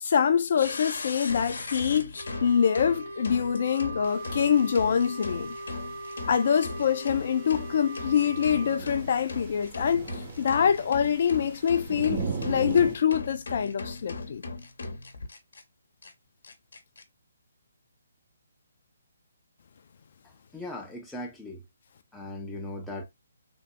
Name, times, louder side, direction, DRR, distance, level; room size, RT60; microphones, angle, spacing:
voice 1, 0.0-5.5 6.3-14.4, left 7 dB, 55° left, 0.4 m, -25 dB
sound 1, 0.6-15.6 16.0-16.1 16.4-17.0, left 3 dB, 75° left, 1.0 m, -39 dB
Wind instrument woodwind instrument, 2.2-8.8, right 1 dB, 70° right, 1.5 m, -40 dB
sound 2, 4.0-13.0, right 4 dB, 35° right, 1.0 m, -40 dB
voice 2, 20.5-21.6 22.1-23.0, left 1 dB, 5° left, 0.6 m, -38 dB
3.5 x 2.7 x 2.2 m
hypercardioid pair, 150°, 0 cm